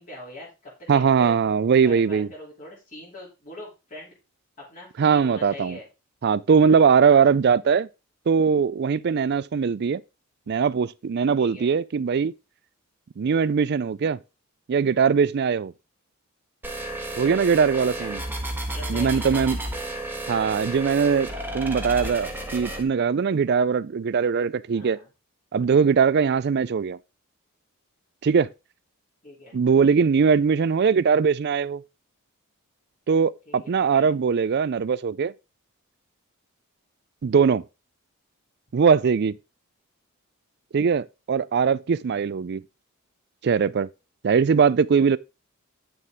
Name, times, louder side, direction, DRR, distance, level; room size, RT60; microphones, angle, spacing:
voice 1, 0.0-1.3 1.7-4.1 4.6-5.9 7.0-7.3 11.4-11.7 17.7-18.1 18.7-19.8 24.7-25.1 29.2-29.6 33.5-34.1, left 1 dB, 35° left, 3.0 m, -42 dB
voice 2, 0.9-2.3 5.0-5.8 6.2-7.9 8.3-10.0 10.5-12.3 13.2-14.2 14.7-15.7 17.2-18.2 18.9-19.6 20.3-25.0 25.5-27.0 28.2-28.5 29.5-31.8 33.1-35.3 37.2-37.6 38.7-39.4 40.7-42.6 43.4-43.9 44.2-45.2, right 6 dB, 50° right, 0.4 m, -21 dB
sound 1, 16.6-22.8, right 1 dB, 10° right, 1.3 m, -32 dB
9.1 x 6.7 x 3.5 m
head